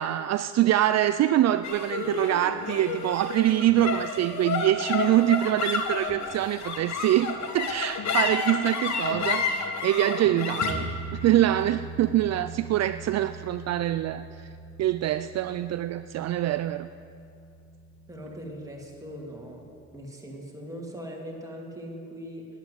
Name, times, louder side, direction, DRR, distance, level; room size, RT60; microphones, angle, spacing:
voice 1, 0.0-14.3 14.8-16.9, right 13 dB, 60° right, 12 dB, 0.4 m, -25 dB
sound 1, 1.6-18.2, left 4 dB, 65° left, 1.4 m, -32 dB
voice 2, 18.1-19.6 19.9-22.5, equal, 10° right, -2 dB, 2.8 m, -40 dB
11.5 x 9.8 x 8.2 m, 2.5 s
cardioid pair, 90°, 30 cm